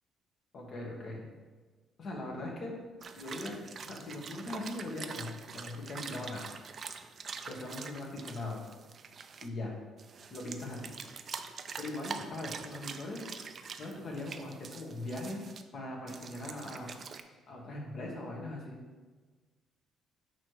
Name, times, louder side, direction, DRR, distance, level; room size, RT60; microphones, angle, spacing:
voice 1, 0.5-1.2 2.0-2.7 3.1-6.5 7.5-8.6 9.4-9.7 10.3-11.0 11.8-13.3 13.8-15.4 15.7-16.9 17.5-18.8, left 2 dB, 50° left, -1 dB, 1.6 m, -40 dB
sound 1, 3.0-9.5 10.0-15.6 16.1-17.2, right 5 dB, 45° right, 0.4 m, -45 dB
8.9 x 3.2 x 4.8 m, 1.4 s
cardioid pair, 125°, 0 cm